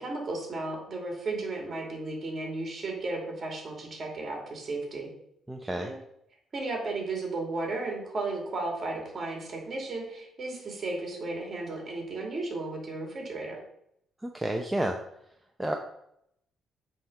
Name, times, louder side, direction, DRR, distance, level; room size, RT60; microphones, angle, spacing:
voice 1, 0.0-5.1 5.8-6.0 6.5-13.6, right 2 dB, 40° right, 0 dB, 2.7 m, -34 dB
voice 2, 5.5-5.9 14.2-15.0 15.6-15.7, right 1 dB, 10° right, 3 dB, 0.7 m, -30 dB
7.4 x 3.8 x 5.5 m, 0.75 s
cardioid pair, 90°, 0 cm